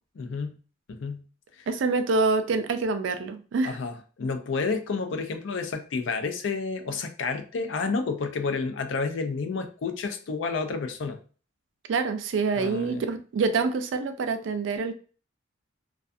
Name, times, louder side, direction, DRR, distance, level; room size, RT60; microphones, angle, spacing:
voice 1, 0.1-0.6 0.9-1.2 1.5-1.7 3.6-11.2 12.6-13.0, left 4 dB, 80° left, 7 dB, 0.4 m, -30 dB
voice 2, 1.7-3.8 11.9-14.9, right 4 dB, 75° right, 8 dB, 0.4 m, -26 dB
2.3 x 2.3 x 2.5 m, 0.39 s
head